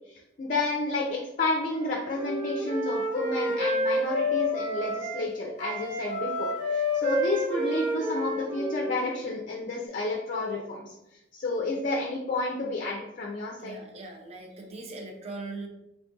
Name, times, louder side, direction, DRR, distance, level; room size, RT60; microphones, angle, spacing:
voice 1, 0.1-10.9 11.3-13.8, left 2 dB, 45° left, -1 dB, 0.5 m, -30 dB
Wind instrument woodwind instrument, 1.7-5.2 5.6-9.3, left 1 dB, 60° right, 0.9 m, -30 dB
voice 2, 13.6-15.7, right 3 dB, 35° right, 2 dB, 0.5 m, -40 dB
3.4 x 2.4 x 3.8 m, 0.87 s
head